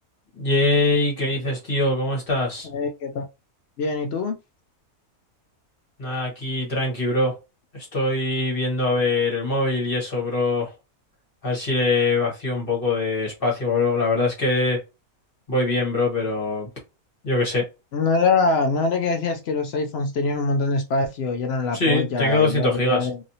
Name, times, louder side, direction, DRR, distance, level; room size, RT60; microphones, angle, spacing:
voice 1, 0.4-2.7 6.0-7.3 7.7-10.7 11.4-14.8 15.5-16.7 17.2-17.6 21.7-23.1, left 2 dB, 40° left, 1.3 m, -23 dB
voice 2, 2.6-3.2 3.8-4.3 17.9-23.2, left 3 dB, 75° left, 0.6 m, -24 dB
2.9 x 2.6 x 2.7 m
omnidirectional pair, 1.6 m